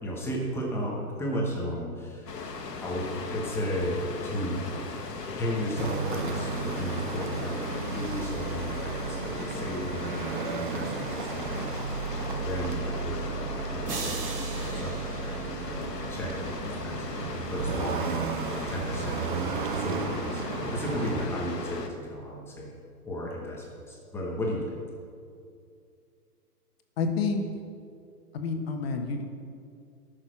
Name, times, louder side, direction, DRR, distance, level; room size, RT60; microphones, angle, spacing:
voice 1, 0.0-2.4 2.8-4.8 5.4-7.6 7.9-11.8 12.1-22.7 23.0-24.8, equal, 5° left, -2 dB, 0.9 m, -34 dB
Water, 2.3-21.9, left 4 dB, 85° left, 1.5 m, -37 dB
sound 1, 5.8-21.3, right 5 dB, 35° right, 0.6 m, -34 dB
sound 2, 13.9-16.2, right 4 dB, 75° right, 2.1 m, -39 dB
voice 2, 27.0-27.4 28.3-29.2, left 4 dB, 40° left, 5 dB, 1.3 m, -28 dB
13.5 x 6.6 x 6.1 m, 2.4 s
hypercardioid pair, 150°, 47 cm